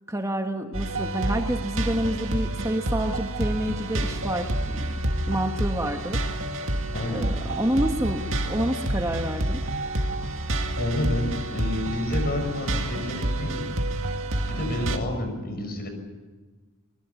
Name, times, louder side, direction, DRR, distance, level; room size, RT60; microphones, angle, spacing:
voice 1, 0.1-4.8 5.3-6.2 7.1-9.6, right 1 dB, 15° right, 4 dB, 1.3 m, -28 dB
sound 1, 0.7-15.0, right 1 dB, 65° right, 2.3 m, -28 dB
voice 2, 6.9-7.2 9.9-10.0 10.8-13.6 14.5-15.9, left 1 dB, 45° left, 6 dB, 6.1 m, -29 dB
24.0 x 22.0 x 7.1 m, 1.3 s
head